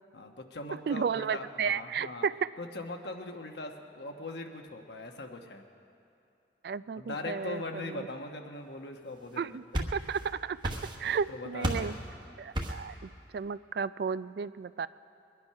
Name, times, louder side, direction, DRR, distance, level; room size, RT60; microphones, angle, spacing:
voice 1, 0.1-2.2 2.6-5.6 7.0-9.9 11.3-12.1, left 2 dB, 75° left, 4 dB, 1.2 m, -41 dB
voice 2, 0.9-2.5 6.6-8.1 9.4-9.6 9.9-10.6 11.0-11.9 12.4-14.9, right 6 dB, 60° right, 17 dB, 0.3 m, -33 dB
sound 1, 9.3-10.3 10.6-11.2 11.6-12.0 12.5-12.9, equal, 25° right, 1.1 m, -33 dB
22.0 x 10.5 x 5.7 m, 2.7 s
head